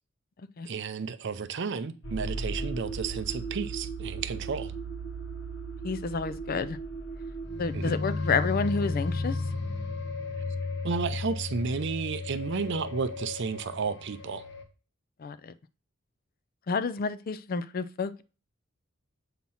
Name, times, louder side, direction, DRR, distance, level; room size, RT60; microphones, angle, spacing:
voice 1, 0.6-4.7 7.7-8.0 10.8-14.4, right 5 dB, 60° right, 0.5 m, -32 dB
sound 1, 2.0-14.6, left 1 dB, 60° left, 1.0 m, -35 dB
voice 2, 5.8-6.8 7.6-9.4 15.2-15.5 16.7-18.1, left 4 dB, 45° left, 0.4 m, -29 dB
7.5 x 2.9 x 5.5 m
head